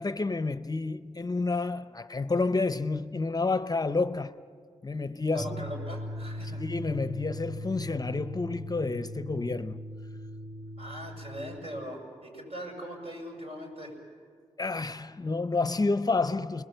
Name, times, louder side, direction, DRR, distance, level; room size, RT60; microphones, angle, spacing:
voice 1, 0.0-4.4 4.8-5.5 6.5-9.8 14.6-16.6, left 3 dB, 35° left, 0.6 m, -29 dB
voice 2, 5.3-6.6 10.8-13.9, equal, 60° right, 7.0 m, -40 dB
sound 1, 5.4-11.6, left 1 dB, 35° right, 4.0 m, -39 dB
30.0 x 21.0 x 7.9 m
wide cardioid pair, 70°, 12 cm